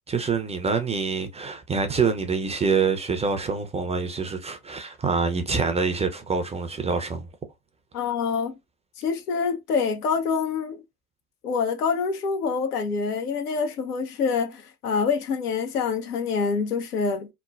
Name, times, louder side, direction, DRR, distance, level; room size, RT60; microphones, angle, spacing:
voice 1, 0.1-7.3, right 5 dB, 15° right, 0.4 m, -26 dB
voice 2, 7.9-8.6 9.0-10.8 11.4-17.3, left 5 dB, 85° left, 0.7 m, -26 dB
3.1 x 2.0 x 2.4 m
hypercardioid pair, 70°, 45 cm